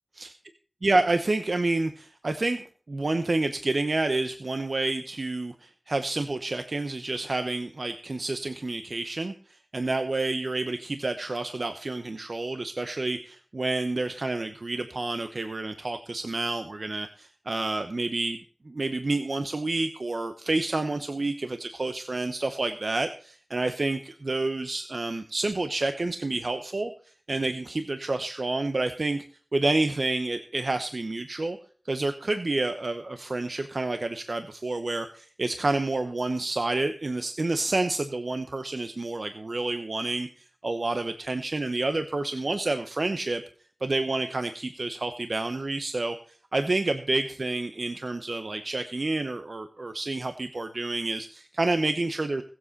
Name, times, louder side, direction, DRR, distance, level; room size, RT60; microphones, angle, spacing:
voice 1, 0.8-18.4 18.7-26.9 27.3-29.2 29.5-31.6 31.8-43.4 43.8-52.4, right 2 dB, 65° right, 8 dB, 0.9 m, -29 dB
21.0 x 7.7 x 4.1 m, 0.42 s
wide cardioid pair, 55°, 0 cm